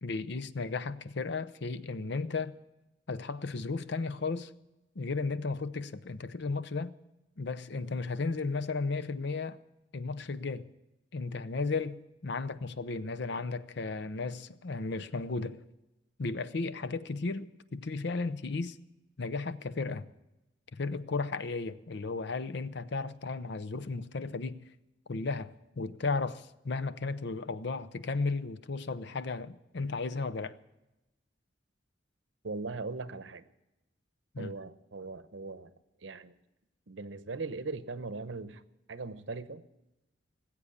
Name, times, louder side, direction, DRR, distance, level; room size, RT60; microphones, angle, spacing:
voice 1, 0.0-2.5 3.1-4.5 5.0-6.9 7.4-9.6 9.9-10.7 11.1-15.6 16.2-18.8 19.2-20.1 20.7-24.6 25.1-30.6 34.3-34.5, left 3 dB, 65° left, 0.7 m, -34 dB
voice 2, 32.4-33.4 34.4-35.7 36.0-36.3 36.9-38.6 38.9-39.6, right 3 dB, 90° right, 0.9 m, -39 dB
19.0 x 8.3 x 8.5 m
head